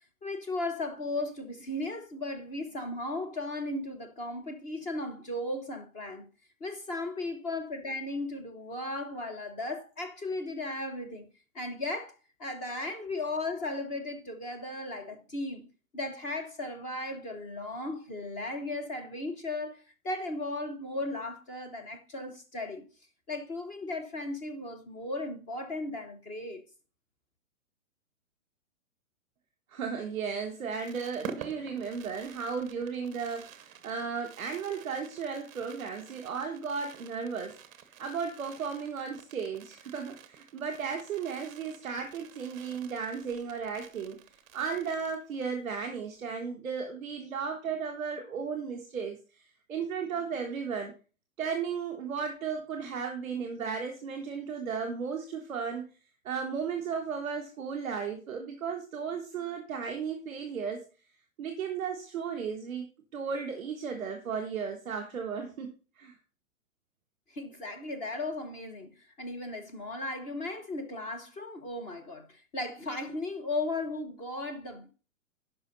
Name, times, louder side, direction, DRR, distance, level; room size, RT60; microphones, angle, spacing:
voice 1, 0.2-6.3 6.6-11.3 11.5-15.7 15.9-22.9 23.3-26.6 67.3-74.9, left 2 dB, 20° left, 1.0 m, -36 dB
voice 2, 29.7-37.6 38.0-44.2 44.5-49.4 49.7-50.9 51.4-55.9 56.2-60.8 61.4-62.9 63.1-66.2, right 6 dB, 5° right, 0.3 m, -35 dB
Fireworks, 30.4-45.6 45.9-46.0 46.2-46.4, right 7 dB, 20° right, 0.8 m, -49 dB
10.5 x 5.6 x 4.1 m
hypercardioid pair, 155°, 40 cm